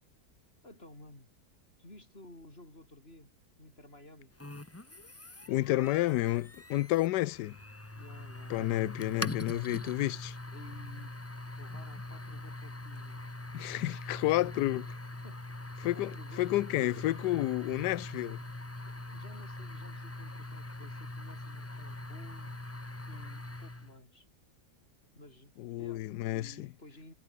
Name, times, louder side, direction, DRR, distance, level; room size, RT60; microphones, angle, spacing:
voice 1, 0.6-1.3 1.8-3.3 3.6-4.3 7.6-8.7 10.5-11.2 11.6-13.2 15.2-15.5 15.9-17.2 18.9-22.6 23.1-24.3 25.1-27.1, left 1 dB, 35° left, 7.9 m, -54 dB
sound 1, 4.4-24.0, left 2 dB, 10° left, 0.7 m, -43 dB
voice 2, 5.5-7.6 8.5-10.4 13.5-14.8 15.8-18.4 25.6-26.7, left 16 dB, 75° left, 1.2 m, -30 dB
omnidirectional pair, 1.9 m